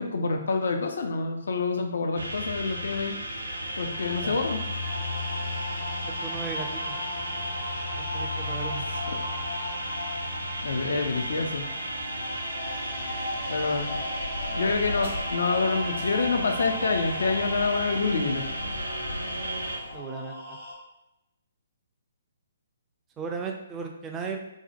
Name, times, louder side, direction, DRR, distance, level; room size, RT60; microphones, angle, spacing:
voice 1, 0.0-3.1 3.8-4.6 9.1-9.2 10.6-11.7 13.5-14.0 14.6-18.4, left 4 dB, 60° left, 5 dB, 0.3 m, -27 dB
sound 1, 2.2-19.8, equal, 80° right, 0.4 m, -34 dB
sound 2, 3.4-20.7, left 1 dB, 45° left, 0.8 m, -37 dB
voice 2, 6.2-7.0 8.0-8.9 19.9-20.6 23.2-24.4, right 5 dB, 15° right, 2 dB, 0.3 m, -36 dB
sound 3, 12.9-20.0, left 1 dB, 80° left, 0.9 m, -40 dB
2.6 x 2.1 x 2.5 m, 0.90 s
figure-of-eight pair, 130°, 0 cm